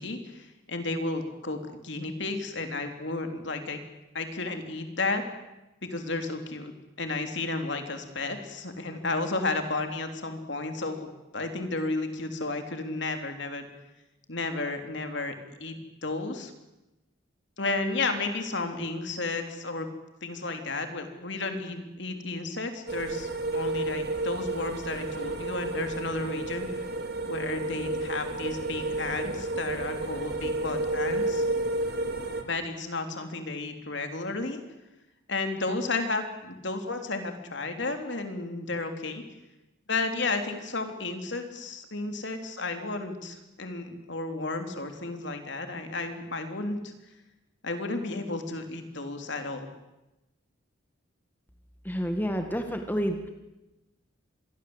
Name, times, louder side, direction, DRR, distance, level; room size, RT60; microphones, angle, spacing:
voice 1, 0.0-3.8 4.1-5.2 5.8-11.1 11.3-13.7 14.3-16.5 17.6-19.9 20.2-26.8 27.3-31.4 32.5-34.6 35.3-39.2 39.9-46.9 47.6-49.7, left 3 dB, 60° left, 6 dB, 3.3 m, -33 dB
sound 1, 22.9-32.4, right 2 dB, 50° right, 2.8 m, -31 dB
voice 2, 51.8-53.2, equal, 10° left, 5 dB, 1.7 m, -29 dB
26.5 x 21.5 x 8.0 m, 0.98 s
head